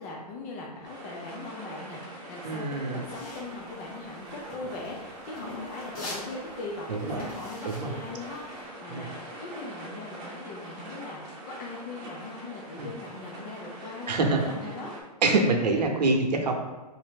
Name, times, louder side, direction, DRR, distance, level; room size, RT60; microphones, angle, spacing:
voice 1, 0.0-14.9, left 3 dB, 25° left, -2 dB, 0.4 m, -40 dB
sound 1, 0.8-15.0, right 1 dB, 20° right, 0.8 m, -43 dB
voice 2, 2.4-3.0 6.9-7.2 7.6-7.9 8.9-9.1 12.8-12.9 14.1-14.4 15.2-16.5, right 3 dB, 85° right, 3 dB, 0.8 m, -25 dB
sound 2, 3.1-8.6, left 2 dB, 55° left, 1.5 m, -42 dB
3.5 x 2.7 x 3.5 m, 1.2 s
hypercardioid pair, 150°, 21 cm